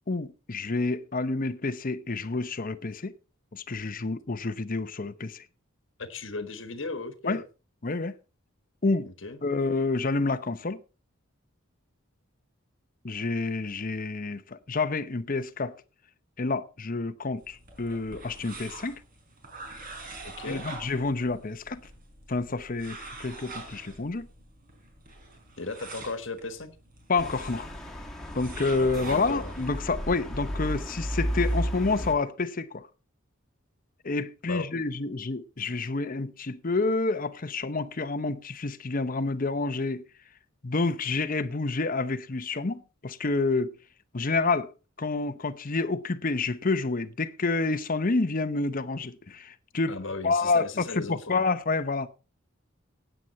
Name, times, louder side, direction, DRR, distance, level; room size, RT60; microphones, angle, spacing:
voice 1, 0.1-3.1 3.5-5.4 7.3-7.4 7.8-8.1 8.8-9.1 9.4-10.8 13.0-15.7 16.4-19.0 20.4-21.8 22.3-24.3 27.1-27.7 28.3-32.9 34.0-40.0 40.6-43.8 44.1-44.7 45.0-49.9 50.2-52.1, left 3 dB, 40° left, 0.8 m, -28 dB
voice 2, 6.0-7.4 9.2-9.4 20.2-20.7 25.6-26.7 28.8-29.5 34.5-34.7 49.9-51.5, left 3 dB, 60° left, 1.4 m, -36 dB
sound 1, 17.4-31.6, right 3 dB, 45° right, 4.7 m, -46 dB
sound 2, 27.2-32.1, equal, 5° left, 2.4 m, -33 dB
16.0 x 9.2 x 4.2 m
head